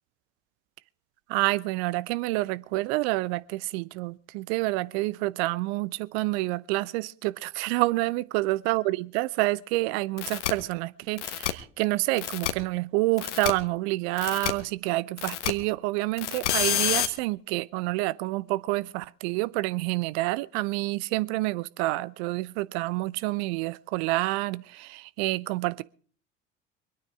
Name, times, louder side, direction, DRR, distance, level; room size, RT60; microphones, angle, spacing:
voice 1, 1.3-25.8, right 20 dB, 60° right, 0.8 m, -28 dB
sound 1, 10.2-10.5 11.2-11.5 12.2-12.5 13.2-13.5 14.2-14.5 15.2-15.5 16.2-17.1, left 12 dB, 70° left, 1.3 m, -28 dB
24.5 x 9.4 x 4.8 m
figure-of-eight pair, 65°, 37 cm